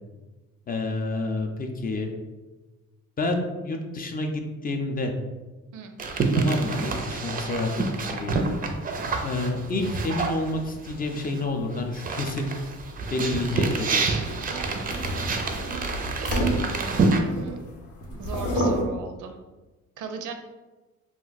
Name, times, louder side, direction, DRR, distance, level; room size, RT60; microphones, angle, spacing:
voice 1, 0.7-2.1 3.2-5.1 6.3-8.4 9.2-12.5 13.1-14.0, left 2 dB, 30° left, 4 dB, 0.4 m, -29 dB
sound 1, 6.0-11.4 11.7-17.2, right 3 dB, 30° right, 0.4 m, -28 dB
sound 2, 13.4-17.7 18.0-18.8, equal, 80° left, 0.8 m, -29 dB
voice 2, 16.3-17.6 18.2-19.4 20.0-20.3, right 5 dB, 85° right, 6 dB, 0.5 m, -38 dB
2.4 x 2.2 x 3.9 m, 1.2 s
cardioid pair, 90°, 30 cm